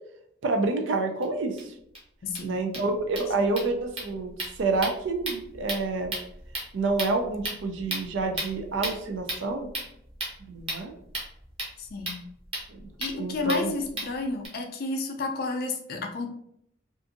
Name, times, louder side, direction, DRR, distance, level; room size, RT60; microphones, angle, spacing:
voice 1, 0.4-1.7 2.4-6.1 6.7-9.7 10.5-10.9 12.7-12.9 13.1-13.7, right 3 dB, 75° right, 4 dB, 0.4 m, -28 dB
sound 1, 1.2-1.3 1.6-1.7 1.9-2.0 2.2-14.5, right 1 dB, 30° right, 0.8 m, -37 dB
voice 2, 2.2-2.5 3.4-3.5 11.8-12.2 13.0-16.3, left 3 dB, 50° left, 4 dB, 0.4 m, -31 dB
2.5 x 2.5 x 2.5 m, 0.74 s
head